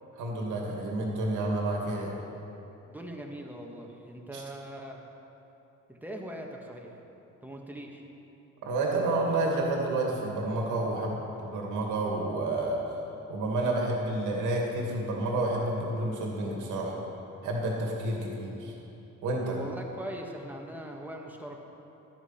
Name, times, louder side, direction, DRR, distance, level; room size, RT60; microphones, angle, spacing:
voice 1, 0.2-2.1 4.3-4.4 8.6-12.8 13.3-17.0 17.4-18.7 19.2-19.6, right 2 dB, 85° right, -1 dB, 2.3 m, -30 dB
voice 2, 2.9-5.0 5.9-6.9 7.4-8.0 18.1-18.3 19.5-21.6, right 1 dB, 5° right, 0 dB, 1.6 m, -41 dB
12.5 x 9.5 x 5.9 m, 3.0 s
cardioid pair, 90°, 30 cm